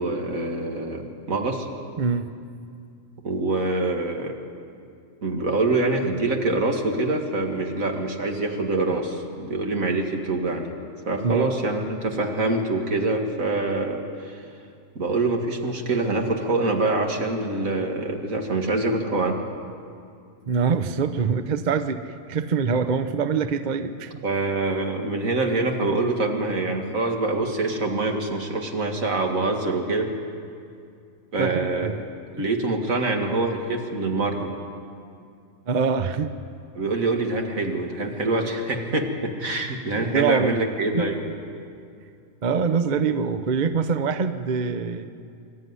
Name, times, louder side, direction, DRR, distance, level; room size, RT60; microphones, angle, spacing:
voice 1, 0.0-1.7 3.2-4.4 5.2-10.7 11.1-14.4 15.0-19.4 24.2-30.1 31.3-32.0 32.3-34.5 36.7-41.2, right 2 dB, 75° right, 3 dB, 2.4 m, -25 dB
voice 2, 2.0-2.3 11.2-11.5 20.5-24.2 31.4-32.0 35.7-36.3 39.9-40.6 40.9-41.0 42.4-45.1, right 5 dB, 40° right, 10 dB, 0.8 m, -24 dB
25.5 x 13.0 x 9.6 m, 2.4 s
omnidirectional pair, 1.4 m